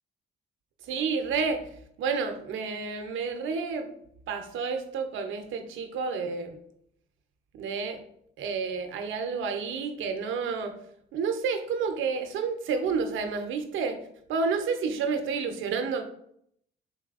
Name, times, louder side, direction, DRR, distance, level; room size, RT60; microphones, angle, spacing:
voice 1, 0.8-1.6 2.0-3.9 4.3-6.6 7.5-8.0 8.4-10.7 11.1-14.0 14.3-16.0, right 5 dB, 80° right, 7 dB, 0.5 m, -30 dB
4.0 x 3.2 x 2.3 m, 0.70 s
cardioid pair, 90°, 20 cm